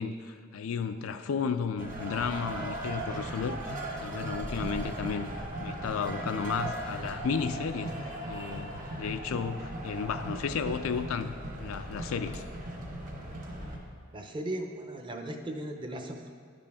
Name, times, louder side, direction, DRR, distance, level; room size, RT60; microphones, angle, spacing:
voice 1, 0.0-3.7 4.0-5.3 5.6-12.4, left 6 dB, 85° left, 9 dB, 0.4 m, -33 dB
sound 1, 1.8-13.8, right 1 dB, 40° right, 1.2 m, -37 dB
voice 2, 14.1-16.3, right 1 dB, 25° right, 4 dB, 0.6 m, -37 dB
10.5 x 5.0 x 3.5 m, 2.1 s
head